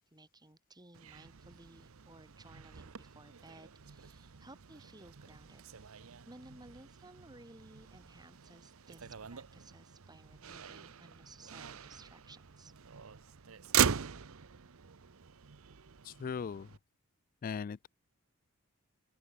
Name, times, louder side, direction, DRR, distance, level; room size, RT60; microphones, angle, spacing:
voice 1, 0.0-12.7, right 2 dB, 20° right, 5.5 m, -57 dB
Motor vehicle (road), 0.9-16.8, right 8 dB, 65° right, 0.8 m, -40 dB
voice 2, 16.0-16.7 17.4-17.9, left 6 dB, 40° left, 0.3 m, -38 dB
open air
head